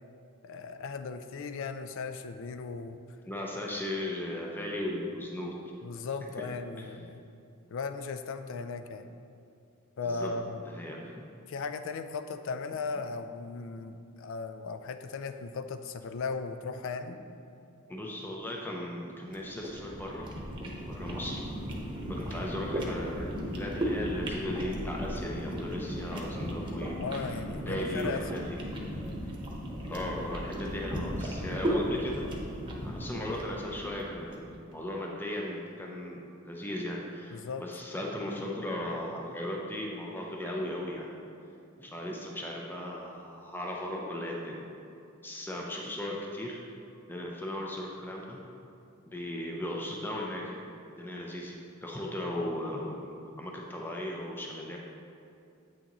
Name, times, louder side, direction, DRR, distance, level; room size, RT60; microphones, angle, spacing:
voice 1, 0.4-3.0 5.8-7.2 7.7-9.1 10.0-10.6 11.5-17.2 27.0-28.2 37.3-37.6, left 4 dB, 65° left, 9 dB, 0.4 m, -37 dB
voice 2, 3.2-5.5 6.4-6.5 10.0-10.3 10.6-11.2 17.9-20.3 20.9-21.4 22.1-27.2 27.6-28.6 29.9-32.2 32.8-41.1 41.8-44.7 45.2-46.6 47.1-48.4 49.0-50.6 51.0-54.8, left 1 dB, 10° left, -2 dB, 0.5 m, -37 dB
sound 1, 19.3-34.5, equal, 25° right, 0.9 m, -36 dB
8.1 x 6.2 x 3.0 m, 2.6 s
head